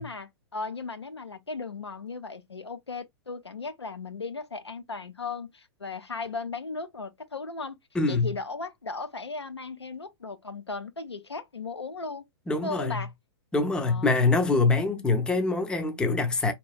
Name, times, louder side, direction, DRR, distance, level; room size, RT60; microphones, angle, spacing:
voice 1, 0.0-7.8 8.1-12.2 12.6-13.1 13.8-14.1 14.9-15.1, left 4 dB, 85° left, 0.6 m, -36 dB
voice 2, 7.9-8.3 12.5-12.9 13.5-16.5, left 3 dB, 5° left, 0.5 m, -24 dB
4.0 x 3.0 x 2.3 m
figure-of-eight pair, 110°, 14 cm